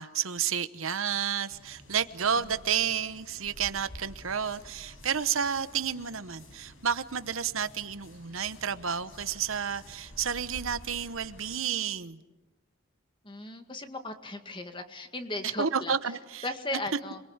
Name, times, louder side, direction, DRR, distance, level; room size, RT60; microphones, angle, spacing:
voice 1, 0.0-12.2 15.6-16.8, right 7 dB, 75° right, 13 dB, 1.0 m, -31 dB
sound 1, 1.5-11.6, left 1 dB, 70° left, 6.5 m, -50 dB
voice 2, 13.2-16.0 16.4-17.2, left 2 dB, 25° left, 7 dB, 2.0 m, -36 dB
28.5 x 22.0 x 8.8 m, 1.1 s
head